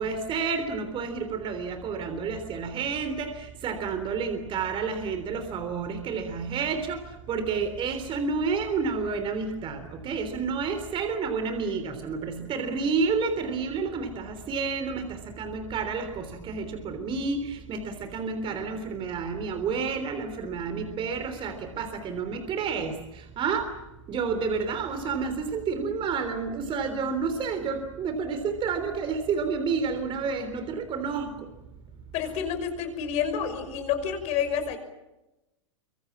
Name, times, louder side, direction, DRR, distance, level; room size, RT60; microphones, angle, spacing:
voice 1, 0.0-7.0 7.3-23.7 24.1-31.5, right 5 dB, 30° right, 8 dB, 3.6 m, -30 dB
voice 2, 32.1-34.8, left 8 dB, 40° left, 7 dB, 6.0 m, -29 dB
26.0 x 24.5 x 7.5 m, 0.98 s
hypercardioid pair, 105°, 16 cm